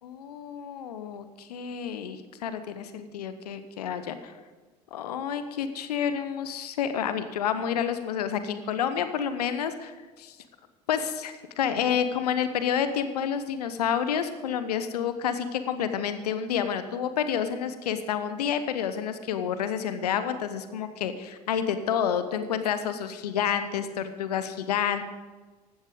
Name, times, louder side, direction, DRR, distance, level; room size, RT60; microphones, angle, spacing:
voice 1, 0.0-4.3 4.9-10.4 10.9-25.0, left 8 dB, 70° left, 11 dB, 1.0 m, -29 dB
16.0 x 12.0 x 5.2 m, 1.3 s
figure-of-eight pair, 65°, 21 cm